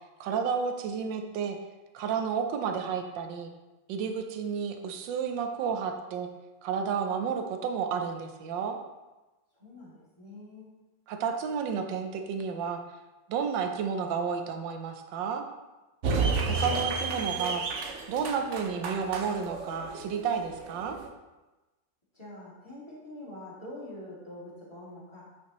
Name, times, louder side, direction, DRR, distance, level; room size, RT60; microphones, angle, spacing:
voice 1, 0.2-1.6 1.9-3.5 3.9-6.3 6.6-8.8 11.1-12.8 13.3-15.5 16.5-17.7 18.1-21.0, right 6 dB, 75° right, 5 dB, 1.4 m, -31 dB
voice 2, 9.5-10.7 22.1-25.3, left 1 dB, 15° left, -7 dB, 2.3 m, -45 dB
sound 1, 16.0-21.1, right 4 dB, 60° right, 0.7 m, -31 dB
9.0 x 5.3 x 3.0 m, 1.1 s
omnidirectional pair, 2.0 m